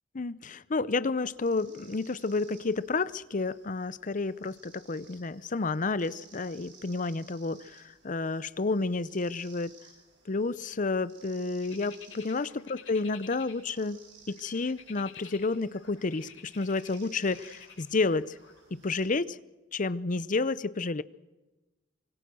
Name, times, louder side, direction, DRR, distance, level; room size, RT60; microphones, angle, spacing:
voice 1, 0.1-9.7 10.3-14.0 14.3-18.4 18.7-19.4 19.7-21.0, left 3 dB, 45° left, 18 dB, 0.7 m, -30 dB
sound 1, 1.2-19.1, right 5 dB, 65° right, 7.8 m, -58 dB
sound 2, 11.6-13.9 14.3-18.6, left 7 dB, 85° left, 6.7 m, -51 dB
25.5 x 24.0 x 6.3 m, 1.1 s
head